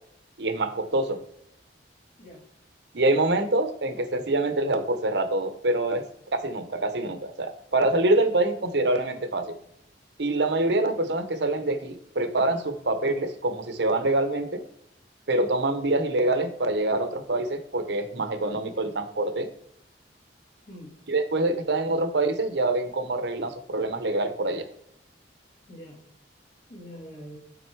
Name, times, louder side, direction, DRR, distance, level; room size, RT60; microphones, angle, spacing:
voice 1, 0.4-1.2 2.9-6.0 6.3-9.5 10.2-14.6 15.3-19.5 21.1-24.7, right 2 dB, 70° right, 8 dB, 0.9 m, -25 dB
voice 2, 20.7-21.0 25.7-26.1 26.7-27.4, equal, 60° left, -3 dB, 2.5 m, -44 dB
7.8 x 3.8 x 4.6 m, 0.75 s
head